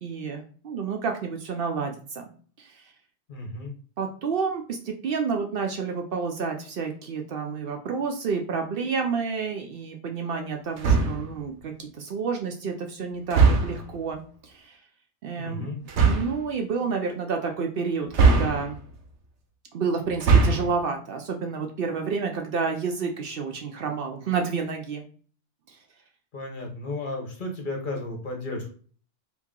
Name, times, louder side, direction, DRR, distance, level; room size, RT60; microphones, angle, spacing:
voice 1, 0.0-2.3 2.6-2.9 4.0-14.8 15.2-15.7 16.0-18.8 19.7-25.0 25.7-25.8, right 5 dB, 60° right, 3 dB, 0.7 m, -30 dB
voice 2, 3.3-3.7 15.4-15.8 26.3-28.7, left 2 dB, 50° left, 1 dB, 1.1 m, -33 dB
sound 1, 10.8-11.3 13.3-13.9 15.9-16.4 18.1-18.9 20.1-20.8, right 4 dB, 80° right, 1.0 m, -20 dB
2.9 x 2.7 x 3.6 m, 0.42 s
omnidirectional pair, 1.2 m